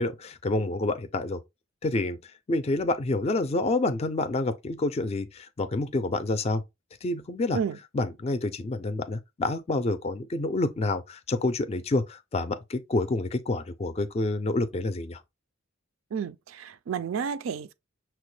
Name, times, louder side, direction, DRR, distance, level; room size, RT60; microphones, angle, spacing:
voice 1, 0.0-1.4 1.8-2.2 2.5-6.6 7.0-7.6 7.9-15.2, left 2 dB, 30° left, 0.4 m, -28 dB
voice 2, 16.1-17.7, right 7 dB, 80° right, 0.4 m, -31 dB
5.9 x 2.1 x 3.1 m
head